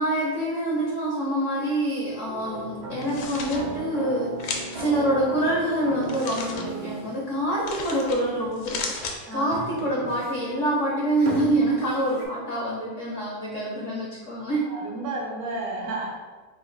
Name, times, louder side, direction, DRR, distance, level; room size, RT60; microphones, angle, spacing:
voice 1, 0.0-14.7, right 1 dB, 70° left, -5 dB, 0.7 m, -26 dB
sound 1, 2.3-12.3, right 2 dB, 85° right, 1.7 m, -37 dB
sound 2, 2.9-3.6 4.4-4.9 6.0-6.7 7.7-8.2 8.5-9.2, left 4 dB, 85° left, 1.4 m, -34 dB
voice 2, 9.3-9.8 14.7-16.1, right 2 dB, 65° right, -2 dB, 0.9 m, -32 dB
4.0 x 2.5 x 3.9 m, 1.4 s
omnidirectional pair, 2.2 m